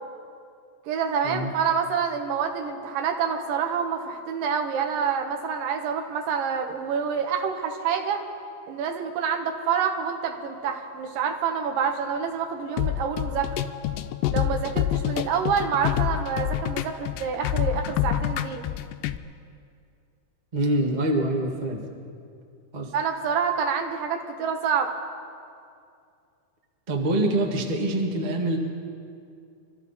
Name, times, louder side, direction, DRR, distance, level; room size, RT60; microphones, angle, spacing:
voice 1, 0.9-8.2 8.7-13.5 14.3-18.6 22.9-24.9, right 6 dB, 85° right, 5 dB, 2.8 m, -27 dB
sound 1, 12.8-19.2, left 13 dB, 85° left, 2.2 m, -27 dB
voice 2, 20.5-21.8 22.7-22.9 26.9-28.6, right 1 dB, 40° right, 0 dB, 0.6 m, -25 dB
25.0 x 13.5 x 4.1 m, 2.4 s
omnidirectional pair, 3.8 m